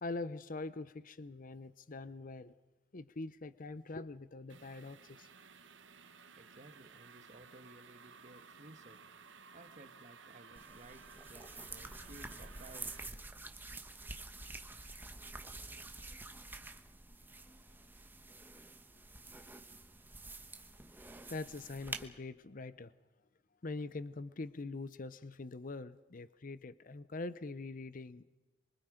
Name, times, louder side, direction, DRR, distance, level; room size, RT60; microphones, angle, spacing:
voice 1, 0.0-2.5 2.9-5.3 21.3-22.9 23.6-28.3, left 3 dB, 45° left, 15 dB, 0.7 m, -43 dB
sound 1, 4.5-13.1, right 5 dB, 85° right, 1.4 m, -57 dB
voice 2, 6.0-13.0 13.5-13.6, right 2 dB, 40° right, 9 dB, 1.5 m, -58 dB
sound 2, 10.6-22.1, right 2 dB, 10° right, 1.2 m, -48 dB
25.5 x 24.0 x 5.1 m, 1.1 s
head